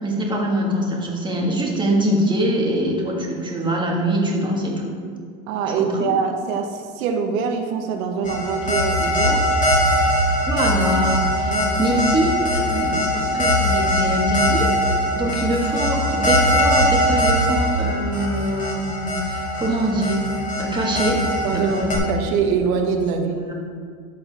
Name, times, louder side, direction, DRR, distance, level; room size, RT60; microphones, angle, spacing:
voice 1, 0.0-4.9 5.8-6.1 10.5-20.2 20.6-22.1 23.5-23.6, right 1 dB, 10° right, -2 dB, 1.6 m, -23 dB
voice 2, 5.5-9.4 11.5-11.8 15.1-15.4 21.4-23.5, right 6 dB, 90° right, 5 dB, 1.2 m, -24 dB
sound 1, 8.2-22.0, equal, 20° left, 2.1 m, -21 dB
12.5 x 7.0 x 3.5 m, 2.1 s
supercardioid pair, 140°, 40 cm